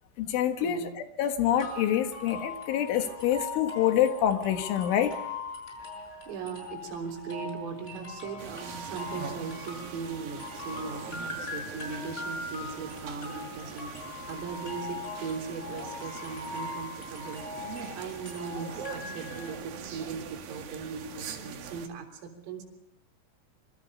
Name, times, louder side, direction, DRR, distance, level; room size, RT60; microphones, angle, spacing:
voice 1, 0.2-5.2, left 10 dB, 70° left, 7 dB, 3.9 m, -26 dB
sound 1, 1.6-19.5, left 3 dB, 15° left, 6.9 m, -41 dB
voice 2, 6.3-14.0 14.3-17.5 18.0-22.7, right 5 dB, 80° right, 4 dB, 6.1 m, -39 dB
sound 2, 8.4-21.9, right 7 dB, 55° right, 3.0 m, -43 dB
26.5 x 25.0 x 5.4 m, 0.88 s
omnidirectional pair, 5.9 m